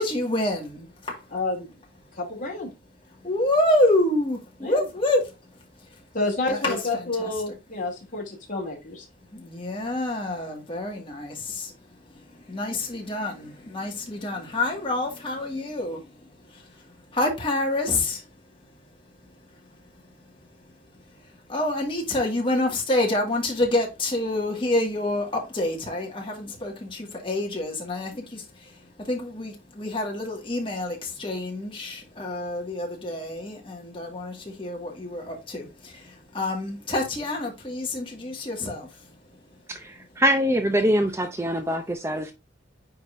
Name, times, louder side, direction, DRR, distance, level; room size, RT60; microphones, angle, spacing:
voice 1, 0.0-1.4 2.0-2.2 3.0-6.1 6.5-7.5 9.3-18.6 19.0-40.1, left 1 dB, 25° left, 1.9 m, -28 dB
voice 2, 1.3-1.7 2.2-2.7 4.6-4.8 6.1-9.0, left 2 dB, 45° left, 2.8 m, -29 dB
voice 3, 39.7-42.3, equal, 15° right, 0.5 m, -24 dB
9.2 x 3.9 x 2.6 m
head